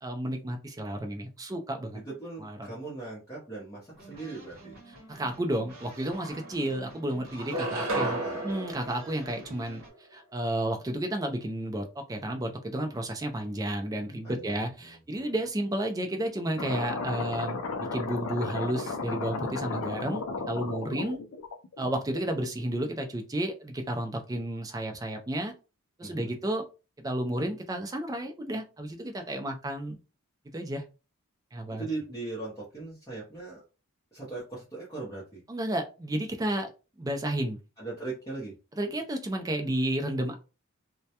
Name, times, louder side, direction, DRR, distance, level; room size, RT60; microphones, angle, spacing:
voice 1, 0.0-2.0 2.4-2.6 5.1-9.8 10.1-17.6 17.9-21.2 21.8-25.5 26.0-26.6 27.0-30.0 30.5-30.8 31.5-31.9 35.5-36.7 37.0-37.6 38.8-40.4, right 1 dB, 15° right, 4 dB, 0.4 m, -32 dB
voice 2, 1.9-4.7 7.8-8.5 14.2-15.4 26.0-26.4 31.7-33.6 34.1-35.4 37.8-38.5, right 3 dB, 15° left, -8 dB, 0.7 m, -39 dB
sound 1, 3.9-9.9, equal, 45° right, 1.0 m, -50 dB
sound 2, 5.7-5.8 6.1-6.9 7.4-10.0, right 2 dB, 75° right, 0.8 m, -34 dB
sound 3, 16.6-22.4, left 3 dB, 70° left, 0.4 m, -34 dB
2.2 x 2.1 x 2.8 m, 0.31 s
head